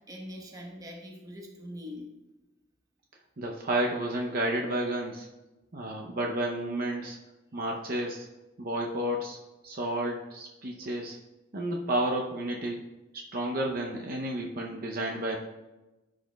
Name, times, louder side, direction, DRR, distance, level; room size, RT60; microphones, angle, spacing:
voice 1, 0.1-2.1, left 1 dB, 20° right, 0 dB, 1.0 m, -42 dB
voice 2, 3.4-5.3 5.7-7.2 7.5-8.3 8.6-9.4 9.6-11.2 11.5-12.8 13.3-15.4, right 1 dB, 50° right, 0 dB, 0.7 m, -31 dB
13.0 x 5.1 x 2.3 m, 1.0 s
head